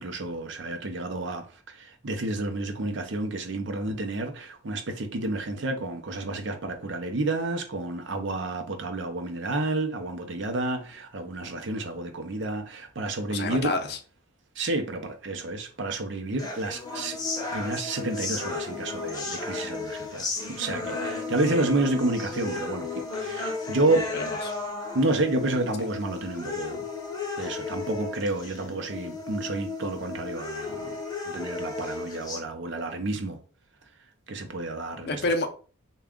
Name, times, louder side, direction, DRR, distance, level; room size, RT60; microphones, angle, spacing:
voice 1, 0.0-13.7 14.6-17.2 17.5-24.1 24.9-26.8 27.4-30.9 31.3-33.4 34.3-35.2, right 2 dB, 60° right, 0.6 m, -30 dB
voice 2, 13.3-14.0 24.1-24.5 35.0-35.5, left 2 dB, 50° left, 0.5 m, -28 dB
sound 1, 16.4-32.4, left 3 dB, 20° left, 0.7 m, -34 dB
3.4 x 2.3 x 3.6 m
head